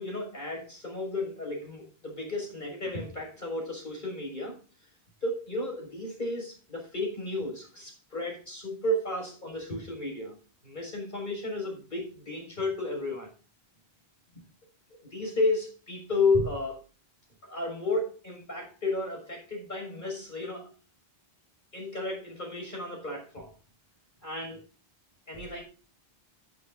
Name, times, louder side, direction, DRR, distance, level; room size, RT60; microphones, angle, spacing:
voice 1, 0.0-4.6 5.2-10.4 10.6-13.3 15.1-16.8 17.4-20.7 21.7-23.5 24.2-24.6 25.3-25.6, left 2 dB, 50° left, 1 dB, 6.5 m, -32 dB
17.5 x 9.3 x 2.6 m, 0.37 s
omnidirectional pair, 1.0 m